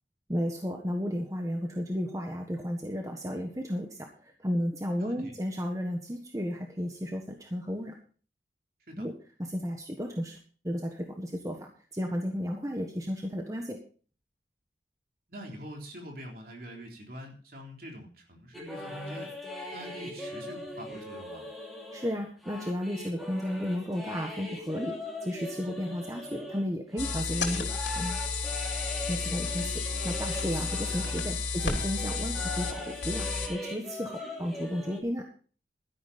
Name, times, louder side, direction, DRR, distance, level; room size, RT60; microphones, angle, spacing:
voice 1, 0.3-7.9 9.0-9.1 9.4-10.4 10.6-13.8 21.9-25.0 25.2-27.7 28.0-28.3 29.1-35.2, equal, 20° right, 2 dB, 1.4 m, -33 dB
voice 2, 5.0-5.3 8.9-9.1 15.3-19.3 19.7-21.4 30.7-31.1, equal, 55° right, 1 dB, 3.5 m, -44 dB
sound 1, 18.5-31.3 31.6-35.0, left 1 dB, ahead, 2.8 m, -40 dB
sound 2, 27.0-33.5, left 4 dB, 90° left, 2.9 m, -32 dB
13.0 x 11.0 x 4.2 m, 0.40 s
head